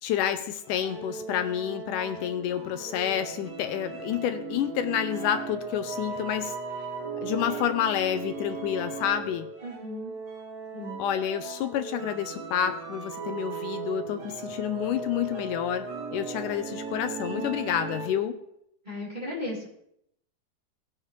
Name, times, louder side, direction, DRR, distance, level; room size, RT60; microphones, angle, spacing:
voice 1, 0.0-6.6 7.2-9.5 11.0-18.4, left 10 dB, 75° left, 8 dB, 2.1 m, -29 dB
sound 1, 0.6-18.4, right 4 dB, 55° right, 3.6 m, -37 dB
voice 2, 9.6-10.1 10.7-11.0 18.8-19.7, left 1 dB, 15° right, -7 dB, 3.4 m, -35 dB
19.0 x 7.3 x 3.2 m, 0.73 s
omnidirectional pair, 3.9 m